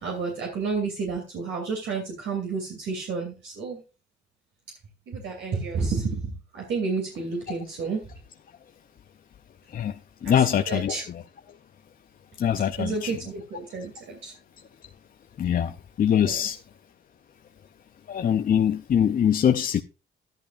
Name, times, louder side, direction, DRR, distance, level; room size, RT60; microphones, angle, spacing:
voice 1, 0.0-3.8 5.1-8.0 10.2-11.0 12.8-14.3 16.2-16.5, right 4 dB, 70° right, 2.8 m, -31 dB
voice 2, 10.2-11.0 12.4-13.1 15.4-15.7 16.0-16.6 18.1-19.8, left 9 dB, 45° left, 0.6 m, -23 dB
11.5 x 10.5 x 2.5 m
cardioid pair, 90°, 20 cm